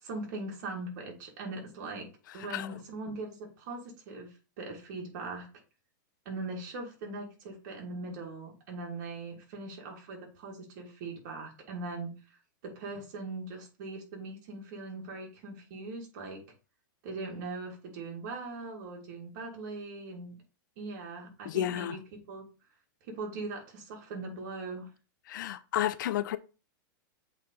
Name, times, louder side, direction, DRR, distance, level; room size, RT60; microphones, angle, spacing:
voice 1, 0.0-2.1 2.3-5.5 6.2-12.1 12.6-16.4 17.0-20.4 20.8-22.0 22.3-22.4 23.0-24.9, right 3 dB, 55° right, 3.0 m, -40 dB
voice 2, 2.4-2.7 21.5-22.0 25.3-26.4, left 12 dB, 70° left, 0.6 m, -31 dB
8.0 x 4.1 x 3.4 m
supercardioid pair, 145°, 11 cm